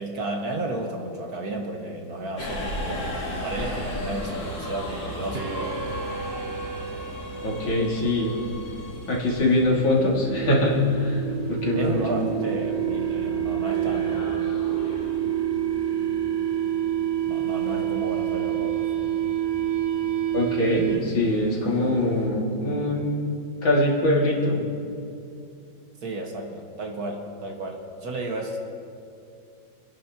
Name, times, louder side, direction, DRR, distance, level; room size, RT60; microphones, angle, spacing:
voice 1, 0.0-3.1 3.4-5.7 11.8-14.3 17.3-18.9 26.0-28.6, right 2 dB, 55° right, 1 dB, 1.8 m, -33 dB
Subway metro underground, 2.4-22.3, left 1 dB, 65° left, 4.1 m, -37 dB
sound 1, 5.3-21.3, right 10 dB, 85° right, 0.5 m, -28 dB
voice 2, 7.4-8.3 9.1-11.2 11.5-12.1 17.6-17.8 20.3-24.6, left 1 dB, 80° left, -4 dB, 3.1 m, -23 dB
29.0 x 10.5 x 2.9 m, 2.5 s
omnidirectional pair, 2.1 m